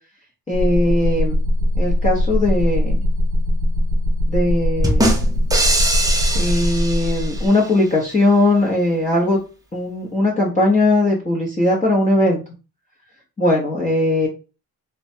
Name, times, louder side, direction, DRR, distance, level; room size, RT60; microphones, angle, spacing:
voice 1, 0.5-1.4 1.8-3.0 4.3-5.1 6.3-9.4 9.7-12.4 13.4-14.3, left 1 dB, 20° left, -6 dB, 0.7 m, -19 dB
sound 1, 0.5-7.5, left 1 dB, 75° right, 0.5 m, -20 dB
sound 2, 4.8-7.7, right 1 dB, 10° right, 0.5 m, -21 dB
3.1 x 2.2 x 2.6 m, 0.33 s
cardioid pair, 130°, 40 cm